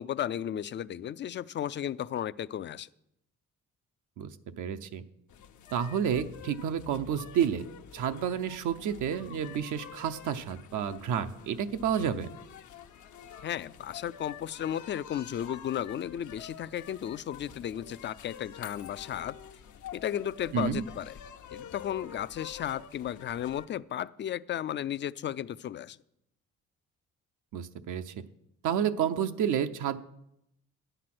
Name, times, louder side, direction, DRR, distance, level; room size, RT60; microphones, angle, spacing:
voice 1, 0.0-2.9 12.0-12.2 13.4-19.4 19.9-21.2 21.5-26.0, left 10 dB, 40° left, 18 dB, 0.4 m, -34 dB
voice 2, 4.6-5.0 5.7-7.6 7.9-12.3 20.5-20.8 27.5-28.1 28.6-30.0, right 8 dB, 80° right, 9 dB, 0.7 m, -30 dB
sound 1, 5.3-23.7, left 8 dB, 75° left, 0.9 m, -48 dB
10.0 x 7.9 x 6.0 m, 0.80 s
cardioid pair, 90°, 30 cm